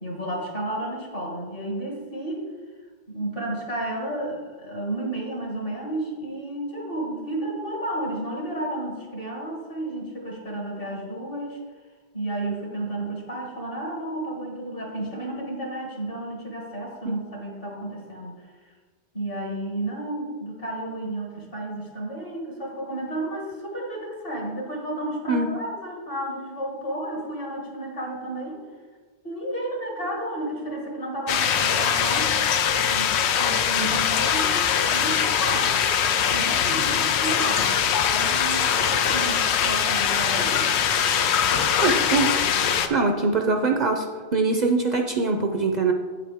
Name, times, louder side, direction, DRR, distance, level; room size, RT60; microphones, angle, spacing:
voice 1, 0.0-2.5 3.1-11.6 12.1-18.7 19.1-28.6 29.2-32.3 32.9-34.4 34.9-35.7 36.3-40.7, right 1 dB, 60° left, -1 dB, 2.2 m, -32 dB
sound 1, 31.3-42.9, left 8 dB, 80° left, 0.9 m, -22 dB
voice 2, 41.8-42.3 42.9-44.0 44.3-45.9, right 3 dB, 50° right, 4 dB, 0.6 m, -22 dB
8.6 x 7.5 x 3.4 m, 1.5 s
omnidirectional pair, 1.1 m